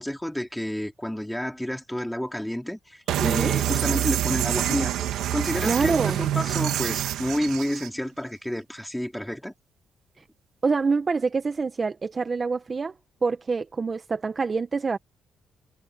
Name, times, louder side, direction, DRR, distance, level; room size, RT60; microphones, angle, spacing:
voice 1, 0.0-5.1 5.3-9.5, equal, 5° left, 4.3 m, -30 dB
sound 1, 3.1-7.9, right 12 dB, 85° right, 2.0 m, -26 dB
voice 2, 3.2-3.5 5.6-6.2 10.6-12.9 13.2-15.0, right 4 dB, 35° right, 1.2 m, -26 dB
cardioid pair, 90°, 0 cm